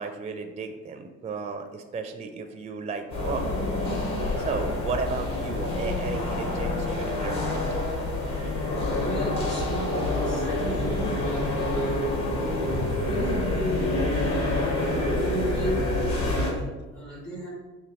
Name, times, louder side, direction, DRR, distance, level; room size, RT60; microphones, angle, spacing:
voice 1, 0.0-3.5 4.3-7.7, right 4 dB, 20° right, 6 dB, 0.4 m, -34 dB
sound 1, 3.1-16.5, left 2 dB, 55° left, 1.3 m, -27 dB
voice 2, 8.9-12.1 12.4-13.9 14.9-17.5, equal, 90° left, -6 dB, 1.4 m, -34 dB
6.2 x 2.4 x 3.1 m, 1.2 s
hypercardioid pair, 50°, 35 cm